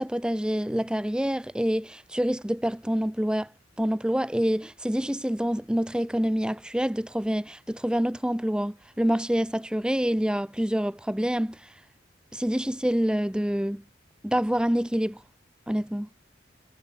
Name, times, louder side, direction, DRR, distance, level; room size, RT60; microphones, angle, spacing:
voice 1, 0.0-3.5 3.8-11.7 12.3-13.8 14.2-15.2 15.7-16.1, equal, 5° right, 0.6 m, -27 dB
head